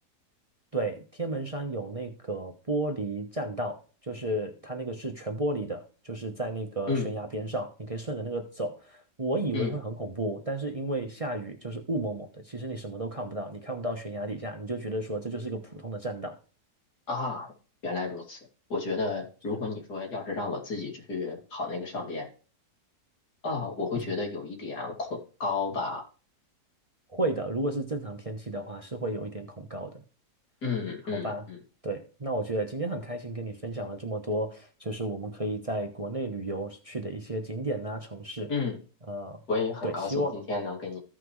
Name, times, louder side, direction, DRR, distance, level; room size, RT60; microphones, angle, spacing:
voice 1, 0.7-16.4 19.5-19.6 23.9-24.0 27.1-30.0 31.1-31.4 31.8-38.5 39.1-39.4 39.8-40.3, right 1 dB, 25° right, 4 dB, 1.0 m, -33 dB
voice 2, 17.1-17.5 17.8-18.4 18.7-22.3 23.4-26.0 30.6-31.6 38.5-38.8 39.5-41.0, left 4 dB, 80° left, -1 dB, 3.3 m, -32 dB
15.0 x 5.9 x 3.2 m, 0.37 s
omnidirectional pair, 1.7 m